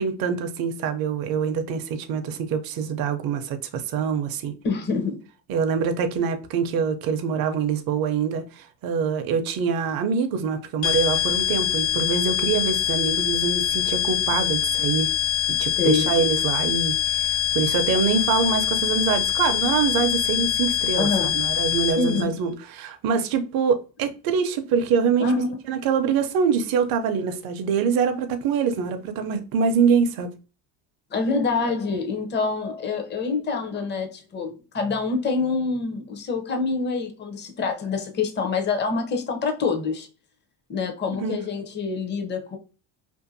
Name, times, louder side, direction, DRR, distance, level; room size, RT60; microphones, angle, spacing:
voice 1, 0.0-4.5 5.5-15.1 15.5-25.3 25.7-30.3 41.2-41.4, right 6 dB, 45° right, 0.5 m, -24 dB
voice 2, 4.6-5.2 15.8-16.1 21.0-21.4 22.0-22.4 25.2-25.6 31.1-40.1 40.7-42.6, left 4 dB, 25° left, 0.5 m, -26 dB
sound 1, 10.8-22.2, left 12 dB, 75° left, 1.2 m, -24 dB
2.6 x 2.5 x 2.5 m
supercardioid pair, 90°, 49 cm